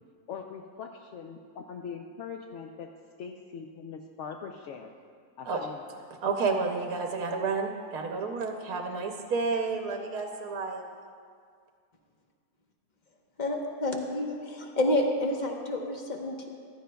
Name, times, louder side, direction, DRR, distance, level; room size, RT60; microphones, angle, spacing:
voice 1, 0.3-2.9 3.2-4.9 5.4-5.8, left 6 dB, 70° left, 3 dB, 0.7 m, -41 dB
voice 2, 6.2-10.9, right 4 dB, 70° right, 3 dB, 1.2 m, -30 dB
voice 3, 13.4-16.5, left 1 dB, 35° left, 1 dB, 0.9 m, -29 dB
14.5 x 12.5 x 2.3 m, 2.1 s
omnidirectional pair, 1.7 m